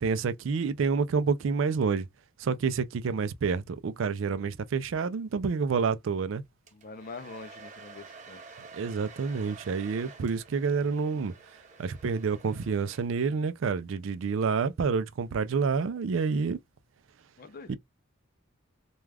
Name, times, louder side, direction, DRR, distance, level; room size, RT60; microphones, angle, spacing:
voice 1, 0.0-2.1 2.4-6.4 8.7-11.3 11.8-16.6 17.7-17.8, right 5 dB, 70° right, 0.4 m, -28 dB
voice 2, 6.7-8.6 17.4-17.7, left 4 dB, 45° left, 0.5 m, -44 dB
Domestic sounds home sounds, 6.7-13.4, right 4 dB, 35° right, 0.7 m, -50 dB
2.3 x 2.2 x 3.3 m
head